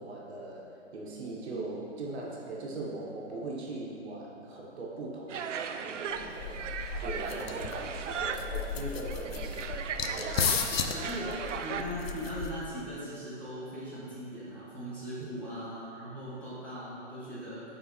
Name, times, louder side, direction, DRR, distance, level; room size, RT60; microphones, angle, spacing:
voice 1, 0.0-11.4 15.2-15.5, right 2 dB, 60° right, -3 dB, 1.2 m, -41 dB
sound 1, 5.3-11.8, right 7 dB, 85° right, 0.5 m, -37 dB
sound 2, 6.2-12.8, left 6 dB, 55° left, 0.5 m, -35 dB
voice 2, 10.9-11.3 11.6-17.6, equal, 5° left, -12 dB, 1.4 m, -39 dB
9.1 x 4.1 x 2.8 m, 2.8 s
hypercardioid pair, 140°, 36 cm